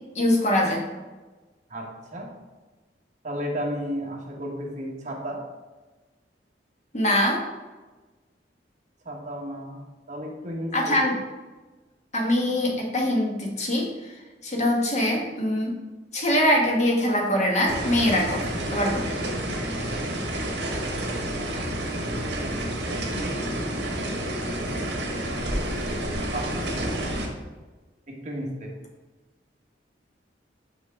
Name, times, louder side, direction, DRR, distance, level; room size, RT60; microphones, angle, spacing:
voice 1, 0.1-0.8 6.9-7.4 10.7-11.2 12.1-13.9 14.4-15.7 16.1-19.0, left 1 dB, 40° left, 0 dB, 1.2 m, -23 dB
voice 2, 1.7-2.3 3.2-5.4 9.0-11.0 21.3-22.8 25.4-25.9 26.3-26.9 28.1-28.7, equal, 45° right, -1 dB, 1.3 m, -34 dB
sound 1, 17.7-27.3, right 1 dB, 70° right, 1.3 m, -29 dB
5.9 x 5.5 x 3.5 m, 1.2 s
head